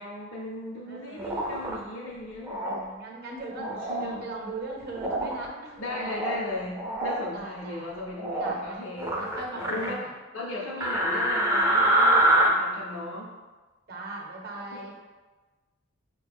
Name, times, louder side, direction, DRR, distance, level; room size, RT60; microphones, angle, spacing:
voice 1, 0.0-2.6 3.6-4.3 5.8-9.2 9.5-9.9 10.3-13.4 14.5-15.0, left 2 dB, 70° left, -6 dB, 0.6 m, -37 dB
voice 2, 0.9-1.4 2.6-3.7 4.0-5.8 7.3-7.9 8.4-10.2 13.9-14.9, right 2 dB, 50° right, 0 dB, 0.8 m, -39 dB
sound 1, 1.2-1.8 2.5-2.8 3.5-4.1 5.0-5.4 5.8-6.4 6.7-7.2 8.2-8.6 9.0-9.9 10.8-12.5, right 1 dB, 15° right, 0.4 m, -25 dB
5.5 x 2.2 x 3.4 m, 1.3 s
head